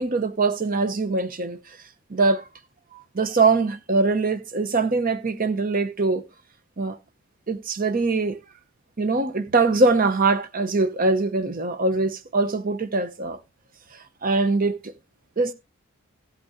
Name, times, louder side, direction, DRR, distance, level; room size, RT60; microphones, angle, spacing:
voice 1, 0.0-1.6 2.1-2.4 3.1-6.2 6.8-7.0 7.5-8.4 9.0-13.4 14.2-14.9 15.4-15.5, right 3 dB, 40° right, 0.8 m, -22 dB
15.5 x 8.5 x 2.6 m
head